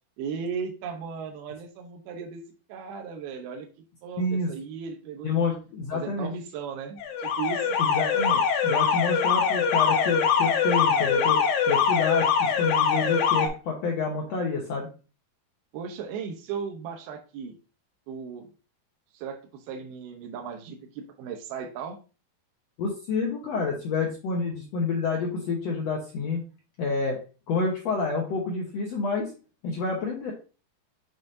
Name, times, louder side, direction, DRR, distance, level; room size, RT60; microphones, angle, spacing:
voice 1, 0.2-2.4 2.7-3.7 4.0-5.5 5.9-7.8 15.7-17.5 18.1-18.5 19.1-22.0, right 6 dB, 80° right, 3 dB, 2.7 m, -36 dB
voice 2, 4.2-4.5 5.2-6.3 7.8-11.4 11.7-14.9 22.8-26.4 26.8-27.2 27.5-29.3 29.6-30.3, left 4 dB, 85° left, -1 dB, 1.4 m, -28 dB
Alarm, 7.0-13.5, left 6 dB, 70° left, 2.1 m, -23 dB
7.0 x 5.5 x 2.6 m, 0.35 s
omnidirectional pair, 4.5 m